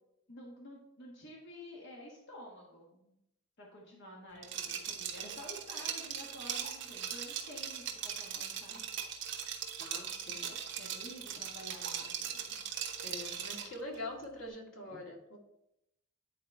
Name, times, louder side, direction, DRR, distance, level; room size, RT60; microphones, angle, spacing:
voice 1, 0.3-3.1 3.6-8.9 10.4-12.6 14.9-15.0, equal, 60° left, -3 dB, 1.5 m, -51 dB
Liquid, 4.4-13.8, right 8 dB, 65° right, 1.1 m, -40 dB
voice 2, 9.8-10.4 13.0-15.4, left 1 dB, 90° left, -1 dB, 2.0 m, -44 dB
9.5 x 4.2 x 4.3 m, 0.82 s
head